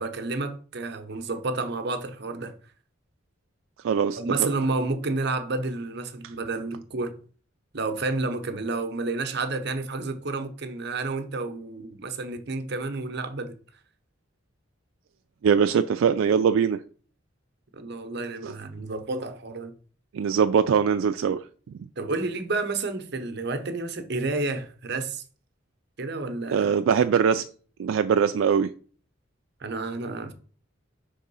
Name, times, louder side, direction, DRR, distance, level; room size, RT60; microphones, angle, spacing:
voice 1, 0.0-2.5 4.2-7.1 7.7-13.6 17.7-19.7 22.0-25.2 26.0-26.7 29.6-30.3, right 3 dB, 55° right, 0.8 m, -30 dB
voice 2, 3.8-4.5 15.4-16.8 18.4-18.5 20.1-21.4 26.5-27.4 27.8-28.7, right 7 dB, 80° right, 0.3 m, -22 dB
5.3 x 3.7 x 5.5 m
head